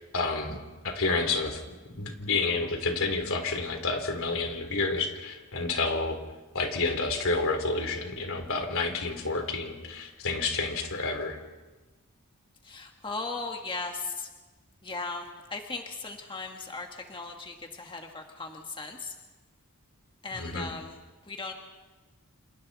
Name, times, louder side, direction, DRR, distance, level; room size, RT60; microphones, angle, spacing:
voice 1, 0.0-6.2 6.5-11.4 20.3-20.7, left 3 dB, 65° left, 5 dB, 3.3 m, -30 dB
voice 2, 12.6-14.3 14.8-15.2 15.5-19.1 20.2-21.0 21.3-21.5, left 3 dB, 25° left, 3 dB, 1.7 m, -37 dB
28.0 x 28.0 x 4.2 m, 1.2 s
head